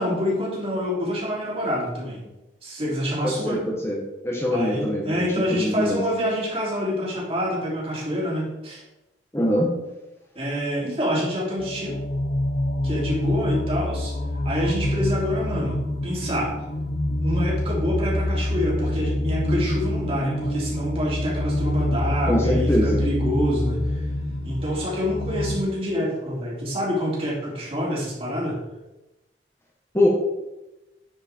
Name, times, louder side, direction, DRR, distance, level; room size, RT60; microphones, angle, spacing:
voice 1, 0.0-2.2 2.6-3.6 4.5-8.8 10.3-12.0 12.8-14.1 14.4-16.6 17.2-24.0 24.4-28.6, equal, 35° right, -5 dB, 3.1 m, -26 dB
voice 2, 3.2-4.0 4.2-6.0 9.3-9.7 22.3-23.0 29.9-30.1, left 1 dB, 15° left, -3 dB, 1.3 m, -23 dB
sound 1, 11.6-25.6, left 1 dB, 65° left, 0.9 m, -26 dB
10.0 x 5.0 x 4.5 m, 0.97 s
head